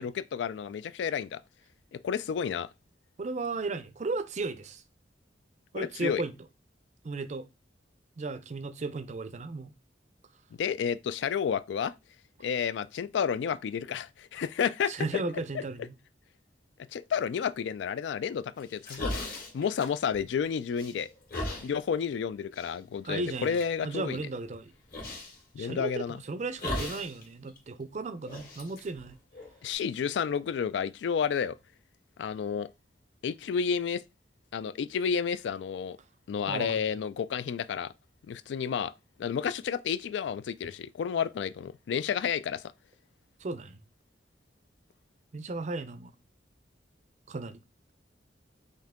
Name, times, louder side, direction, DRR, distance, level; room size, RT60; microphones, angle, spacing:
voice 1, 0.0-1.4 1.9-2.7 5.7-6.2 10.6-11.9 12.4-15.1 16.9-19.3 19.5-21.1 21.6-24.2 25.5-26.2 29.6-31.6 32.2-32.7 33.2-34.0 34.5-36.0 36.3-37.9 38.3-38.9 39.2-42.6, left 7 dB, 75° left, 0.3 m, -31 dB
voice 2, 3.2-4.8 5.7-6.4 7.0-7.5 8.2-9.7 14.9-16.0 23.0-24.7 25.6-29.2 36.5-36.8 43.4-43.8 45.3-46.1 47.3-47.6, right 3 dB, 40° right, 0.5 m, -35 dB
Big Pig Eating, 18.6-20.4 20.8-21.7 22.5-22.7 23.2-23.7 24.9-25.4 26.6-27.2 27.5-27.6 28.2-29.7, left 1 dB, 55° left, 1.8 m, -37 dB
5.5 x 2.7 x 3.6 m
head